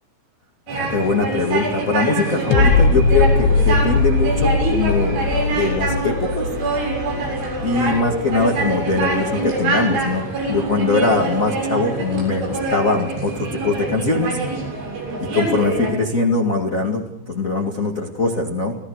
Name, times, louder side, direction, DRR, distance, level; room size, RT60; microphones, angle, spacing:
voice 1, 0.7-6.5 7.6-14.4 15.3-18.8, left 3 dB, 40° left, 0 dB, 1.1 m, -21 dB
sound 1, 0.7-15.9, right 2 dB, 90° right, 9.8 m, -25 dB
sound 2, 2.5-9.6 10.0-10.1, left 4 dB, 70° left, 3.5 m, -20 dB
28.5 x 16.5 x 6.5 m, 0.81 s
omnidirectional pair, 5.4 m